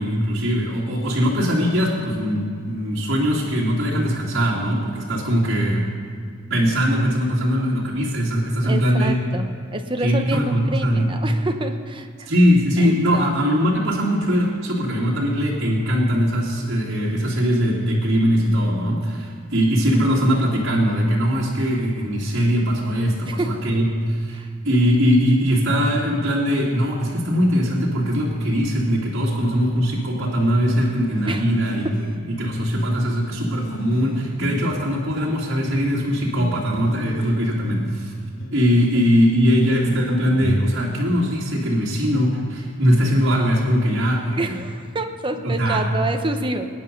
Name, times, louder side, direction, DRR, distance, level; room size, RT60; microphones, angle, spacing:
voice 1, 0.0-5.8 6.5-9.2 10.0-11.1 12.3-31.9 32.4-38.1 38.5-44.6 45.4-45.8, equal, 60° right, -7 dB, 2.6 m, -21 dB
voice 2, 8.6-12.3 12.8-13.3 23.3-23.6 24.3-24.5 31.2-31.5 31.8-31.9 38.9-39.0 44.4-46.7, right 2 dB, 25° right, 6 dB, 1.0 m, -28 dB
sound 1, 30.4-41.3, equal, 75° left, 1.1 m, -35 dB
21.0 x 10.0 x 5.4 m, 2.1 s
head